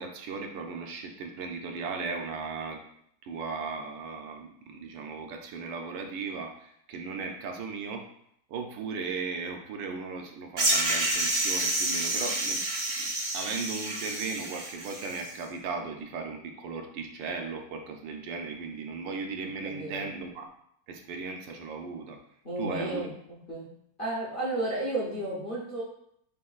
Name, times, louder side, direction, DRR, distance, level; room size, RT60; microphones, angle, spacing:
voice 1, 0.0-2.8 3.2-8.0 8.5-12.6 13.0-20.5 20.9-22.2 22.6-23.1, right 4 dB, 75° right, 3 dB, 1.3 m, -37 dB
sound 1, 10.6-15.3, right 2 dB, 45° right, 0.9 m, -29 dB
voice 2, 19.6-20.0 22.4-23.7 24.0-25.8, right 1 dB, 40° left, -5 dB, 0.8 m, -33 dB
7.2 x 2.6 x 2.4 m, 0.71 s
omnidirectional pair, 2.0 m